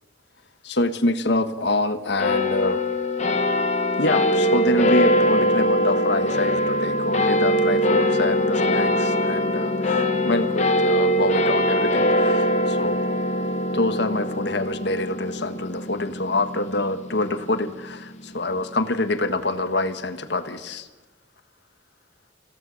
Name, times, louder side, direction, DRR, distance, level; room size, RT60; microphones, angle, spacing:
voice 1, 0.6-2.8 4.0-13.0 13.7-20.9, left 2 dB, 65° left, 10 dB, 1.5 m, -26 dB
sound 1, 2.2-18.9, equal, 40° left, 1.7 m, -22 dB
27.0 x 16.5 x 6.4 m, 1.1 s
head